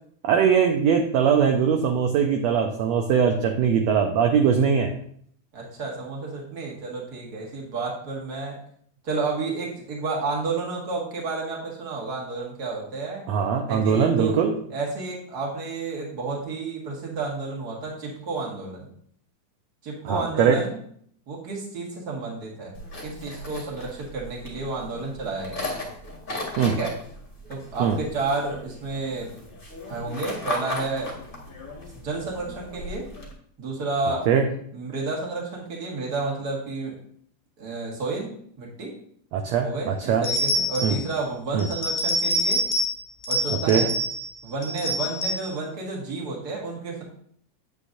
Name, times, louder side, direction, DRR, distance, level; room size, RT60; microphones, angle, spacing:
voice 1, 0.2-4.9 13.3-14.6 20.0-20.6 26.6-26.8 27.8-28.0 34.3-34.4 39.3-40.3 40.8-41.0 41.5-41.7 43.7-43.9, right 7 dB, 75° right, 4 dB, 1.7 m, -21 dB
voice 2, 5.5-8.6 9.0-13.3 13.7-14.4 14.7-18.9 19.8-20.8 21.3-22.7 23.0-25.9 26.6-27.0 27.5-29.3 29.9-31.1 31.9-33.1 33.6-34.3 34.7-37.0 37.6-38.9 39.6-42.6 43.3-43.9 44.4-47.0, right 3 dB, 35° right, -2 dB, 2.1 m, -31 dB
sound 1, 22.7-33.3, left 2 dB, 25° left, 1.1 m, -37 dB
sound 2, 40.2-41.1 41.6-43.0 43.2-44.3 44.6-45.5, equal, 60° left, 1.0 m, -26 dB
8.8 x 8.2 x 2.6 m, 0.63 s
omnidirectional pair, 3.5 m